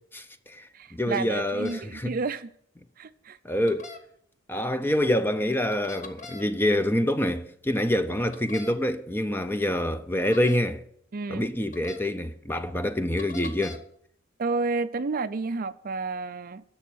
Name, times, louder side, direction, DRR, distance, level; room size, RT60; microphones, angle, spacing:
voice 1, 0.1-2.2 3.4-3.9 4.5-10.8 11.3-13.8, left 1 dB, 10° left, 0.6 m, -26 dB
voice 2, 0.7-2.5 3.0-3.4 11.1-11.5 14.4-16.6, right 4 dB, 45° right, 0.5 m, -31 dB
sound 1, 1.5-1.8 3.7-4.0 5.7-6.4 8.3-8.7 10.3-10.6 11.7-12.0 13.2-13.8, left 4 dB, 35° left, 1.3 m, -42 dB
11.5 x 7.1 x 9.2 m
head